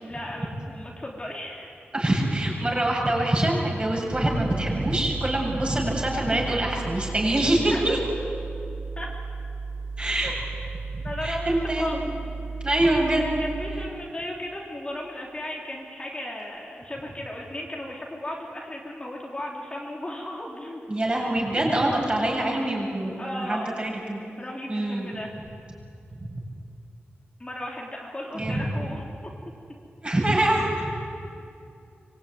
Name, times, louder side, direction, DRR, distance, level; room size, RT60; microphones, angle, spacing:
voice 1, 0.0-1.7 7.6-7.8 9.0-9.1 11.0-12.2 13.4-20.8 22.3-22.7 23.2-23.8 24.4-25.3 27.4-29.0, left 1 dB, 25° left, -3 dB, 3.5 m, -35 dB
voice 2, 1.9-8.0 10.0-10.3 10.9-12.0 12.6-13.4 20.9-24.2 24.7-25.1 28.3-28.6 30.0-30.9, right 1 dB, 25° right, -1 dB, 7.9 m, -25 dB
sound 1, 4.1-13.9, right 4 dB, 75° right, 4.3 m, -35 dB
25.5 x 23.5 x 9.6 m, 2.6 s
wide cardioid pair, 105°, 4 cm